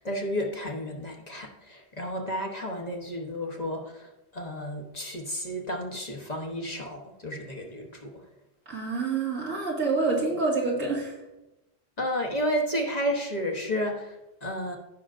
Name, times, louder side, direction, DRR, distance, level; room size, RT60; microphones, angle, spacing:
voice 1, 0.0-8.1 12.0-14.8, equal, 35° left, 1 dB, 1.0 m, -32 dB
voice 2, 8.7-11.1, right 3 dB, 85° right, -3 dB, 2.5 m, -27 dB
15.0 x 6.1 x 2.5 m, 0.98 s
omnidirectional pair, 1.3 m